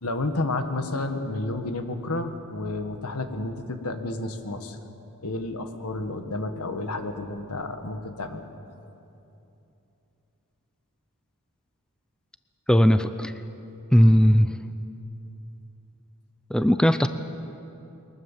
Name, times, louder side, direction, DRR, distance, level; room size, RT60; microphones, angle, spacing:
voice 1, 0.0-4.8 5.2-8.5, left 2 dB, 85° left, 7 dB, 1.7 m, -31 dB
voice 2, 12.7-13.3 13.9-14.5 16.5-17.1, equal, 5° left, 10 dB, 0.5 m, -18 dB
22.5 x 20.0 x 7.4 m, 2.9 s
head